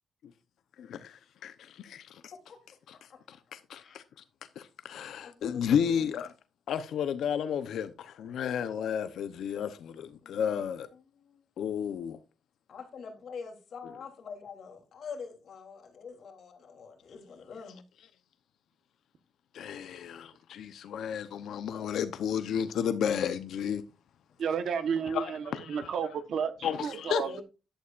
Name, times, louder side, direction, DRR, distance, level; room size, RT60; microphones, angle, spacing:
voice 1, 0.8-2.3 3.3-4.0 4.6-6.3 6.7-10.9 11.6-12.2 13.8-14.0 19.5-23.8 25.1-25.9 26.6-27.4, left 8 dB, 75° left, 0.8 m, -32 dB
voice 2, 5.2-6.0 10.2-10.4 12.7-17.8 27.2-27.4, left 5 dB, 50° left, 3.3 m, -45 dB
voice 3, 24.4-26.5 26.8-27.4, right 7 dB, 60° right, 1.2 m, -31 dB
11.5 x 11.5 x 2.5 m
wide cardioid pair, 175°, 0 cm